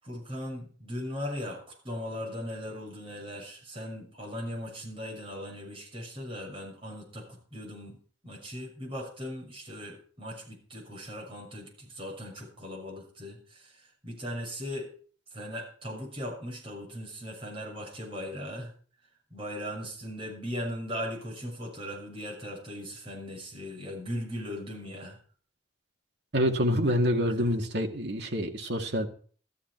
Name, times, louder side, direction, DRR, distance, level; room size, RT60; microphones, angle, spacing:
voice 1, 0.0-14.9 15.3-18.7 19.3-25.2 27.4-27.5, equal, 30° right, -1 dB, 6.4 m, -38 dB
voice 2, 26.3-29.1, equal, 60° right, 4 dB, 2.1 m, -27 dB
14.0 x 13.5 x 4.5 m, 0.43 s
head